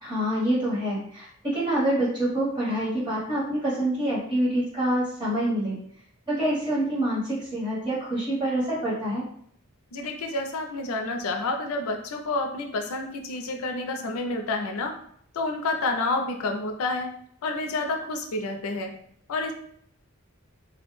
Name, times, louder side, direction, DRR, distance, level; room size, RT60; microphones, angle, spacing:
voice 1, 0.0-5.8 6.3-9.2, right 1 dB, 20° right, -7 dB, 1.1 m, -26 dB
voice 2, 9.9-14.9 15.3-17.1 17.4-18.9 19.3-19.5, left 2 dB, 75° left, 4 dB, 0.4 m, -29 dB
2.2 x 2.1 x 3.0 m, 0.65 s
head